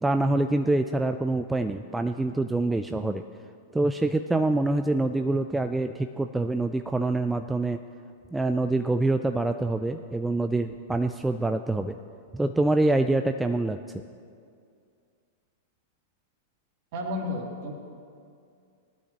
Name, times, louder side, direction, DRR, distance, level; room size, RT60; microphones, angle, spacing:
voice 1, 0.0-3.2 3.7-7.8 8.3-12.0 12.3-14.0, right 2 dB, 5° right, 7 dB, 0.4 m, -25 dB
voice 2, 16.9-17.7, left 1 dB, 50° right, -1 dB, 2.6 m, -32 dB
19.0 x 12.0 x 3.0 m, 2.3 s
figure-of-eight pair, 95°, 0 cm